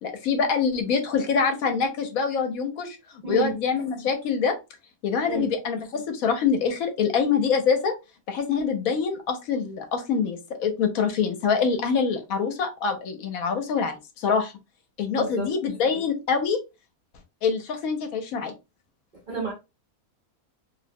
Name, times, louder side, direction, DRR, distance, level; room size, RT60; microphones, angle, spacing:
voice 1, 0.0-4.5 5.0-7.9 8.3-14.5 15.0-16.6 17.4-18.5, left 6 dB, 75° left, 1.1 m, -25 dB
voice 2, 3.2-3.6 5.3-5.5 15.1-15.5 19.3-19.5, right 4 dB, 45° right, 0.6 m, -30 dB
2.6 x 2.1 x 2.6 m
omnidirectional pair, 1.5 m